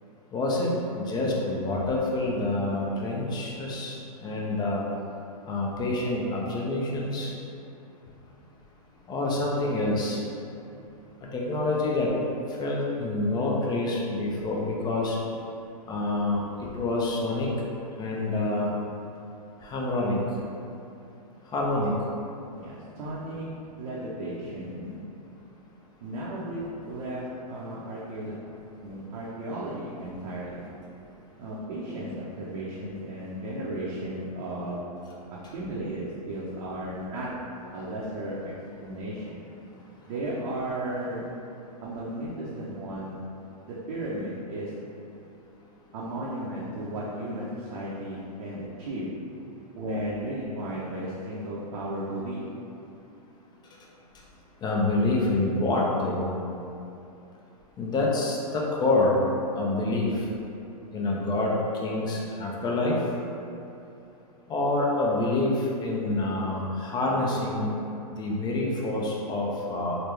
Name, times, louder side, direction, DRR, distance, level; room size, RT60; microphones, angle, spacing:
voice 1, 0.3-4.8 5.5-7.3 9.1-10.2 11.3-12.1 12.6-15.2 15.9-16.4 16.7-17.5 18.0-18.7 19.6-20.2 21.5-21.9 54.6-56.3 57.8-59.1 59.5-60.1 60.9-61.6 61.8-63.0 64.5-67.7 68.2-70.0, left 2 dB, 20° left, -3 dB, 0.6 m, -27 dB
voice 2, 22.5-25.0 26.0-28.4 28.8-30.7 31.4-34.9 35.5-37.5 37.7-38.5 38.8-39.4 40.1-41.3 41.8-43.3 43.7-44.7 45.9-49.1 49.8-52.4, right 1 dB, 65° right, -7 dB, 0.7 m, -34 dB
3.9 x 2.1 x 3.2 m, 2.8 s
hypercardioid pair, 120°, 20 cm